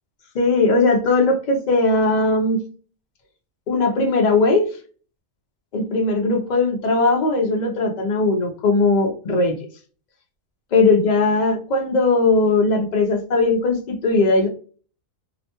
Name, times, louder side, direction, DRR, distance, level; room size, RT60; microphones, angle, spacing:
voice 1, 0.3-2.6 3.7-4.6 5.7-9.5 10.7-14.5, left 3 dB, 75° left, 2 dB, 0.4 m, -19 dB
2.9 x 2.1 x 2.8 m, 0.40 s
omnidirectional pair, 1.5 m